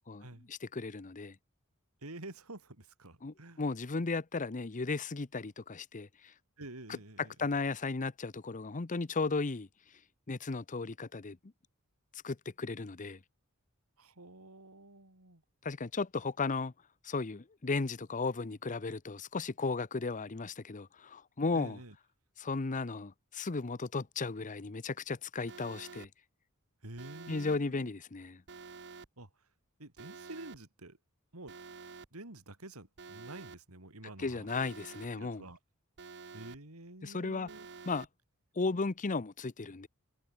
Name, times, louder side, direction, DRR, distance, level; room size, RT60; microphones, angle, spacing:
voice 1, 0.1-1.4 3.2-6.3 7.2-9.7 10.3-11.4 12.1-13.2 15.6-16.7 17.0-21.8 22.4-26.1 27.3-28.4 34.2-35.4 37.0-37.5 37.8-38.1 38.6-39.9, left 3 dB, 35° left, 0.7 m, -35 dB
voice 2, 2.0-3.6 6.6-7.4 14.0-15.4 21.5-22.0 26.8-27.9 29.2-29.5 29.8-31.0 31.3-31.6 32.1-34.5 35.1-35.6 36.3-37.7, right 2 dB, 85° right, 3.5 m, -49 dB
Alarm, 25.5-26.1 27.0-27.6 28.5-29.1 30.0-30.6 31.5-32.1 33.0-33.6 34.5-35.1 36.0-36.6 37.5-38.1, right 4 dB, 55° right, 1.1 m, -49 dB
head